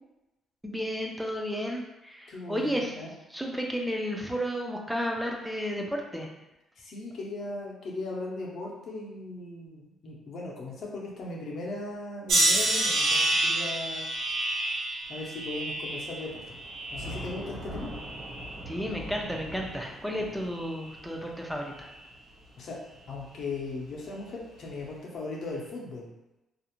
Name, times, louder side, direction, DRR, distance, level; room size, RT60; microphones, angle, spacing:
voice 1, 0.6-2.9 3.3-6.3 18.7-21.9, equal, ahead, 0 dB, 0.4 m, -32 dB
voice 2, 2.3-3.1 6.8-14.0 15.1-16.4 16.9-17.9 22.6-22.8 23.1-26.1, left 2 dB, 55° left, -3 dB, 0.6 m, -38 dB
sound 1, 12.3-17.4 17.9-18.6 19.3-19.6, right 1 dB, 85° right, 0.7 m, -28 dB
Thunder / Rain, 15.1-25.0, equal, 70° right, 1.2 m, -45 dB
2.4 x 2.0 x 2.9 m, 0.98 s
cardioid pair, 140°, 0 cm